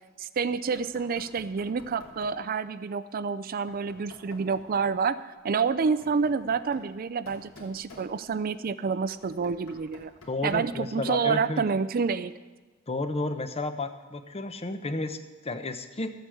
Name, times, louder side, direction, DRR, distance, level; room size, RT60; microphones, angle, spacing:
voice 1, 0.2-10.1 10.4-12.3, right 5 dB, 45° right, 14 dB, 0.4 m, -28 dB
Knock, 0.7-2.5 3.7-4.9 5.6-8.5 9.0-10.8, left 1 dB, 85° left, 2.8 m, -52 dB
voice 2, 10.3-11.7 12.9-16.1, left 2 dB, 30° left, 9 dB, 0.8 m, -32 dB
13.0 x 8.1 x 7.8 m, 1.3 s
head